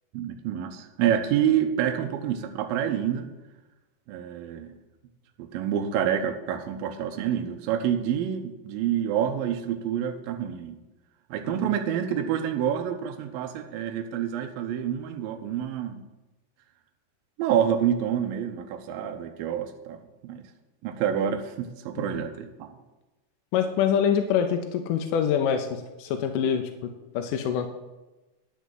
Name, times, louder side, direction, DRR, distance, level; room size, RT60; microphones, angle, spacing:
voice 1, 0.1-3.3 4.1-4.7 5.4-10.7 11.3-16.0 17.4-20.0 20.2-20.4 20.8-22.7, right 9 dB, 75° right, 4 dB, 2.4 m, -27 dB
voice 2, 23.5-26.7 27.1-27.7, left 8 dB, 80° left, 6 dB, 1.9 m, -25 dB
10.5 x 6.2 x 7.5 m, 1.1 s
omnidirectional pair, 4.5 m